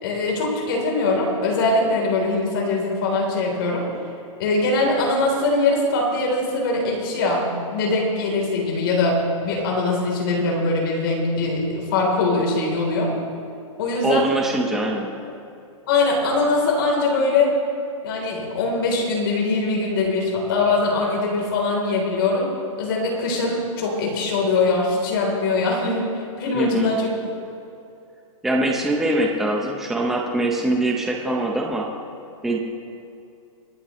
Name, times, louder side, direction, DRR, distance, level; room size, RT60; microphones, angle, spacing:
voice 1, 0.0-3.9 4.4-7.4 7.7-13.1 13.8-14.3 15.9-17.6 18.0-22.5 22.8-26.1 26.4-27.1, left 3 dB, 40° left, -1 dB, 3.5 m, -22 dB
voice 2, 14.0-15.1 26.5-26.9 28.4-31.9 32.4-32.6, right 1 dB, ahead, 0 dB, 0.8 m, -23 dB
25.5 x 10.5 x 3.1 m, 2.6 s
hypercardioid pair, 170°, 17 cm